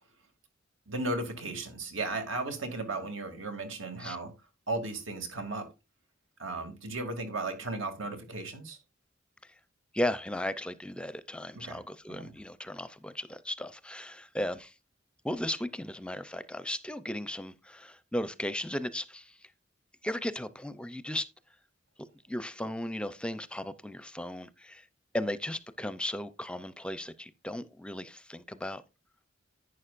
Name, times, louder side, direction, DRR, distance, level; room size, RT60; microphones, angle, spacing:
voice 1, 0.9-4.3 4.7-5.7 6.4-8.8 11.6-11.8 12.1-12.3, right 2 dB, 80° right, 2.5 m, -35 dB
voice 2, 9.9-14.7 15.2-19.4 20.0-21.3 22.3-24.9 25.1-28.8, left 1 dB, 5° left, 0.5 m, -36 dB
11.0 x 9.3 x 2.5 m
head